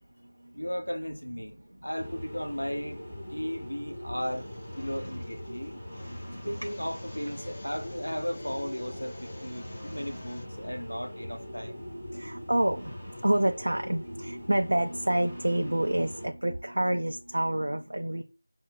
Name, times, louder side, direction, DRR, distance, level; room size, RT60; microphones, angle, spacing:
voice 1, 0.5-1.5 1.8-3.0 3.3-4.5 4.8-5.8 6.4-11.8, equal, 80° left, 0.6 m, -35 dB
sound 1, 2.0-16.3, equal, 5° left, 1.2 m, -41 dB
sound 2, 4.2-10.5, left 2 dB, 25° left, 0.7 m, -50 dB
voice 2, 12.1-12.9 13.2-18.2, right 1 dB, 55° right, 0.3 m, -28 dB
5.0 x 2.0 x 2.2 m
figure-of-eight pair, 170°, 0 cm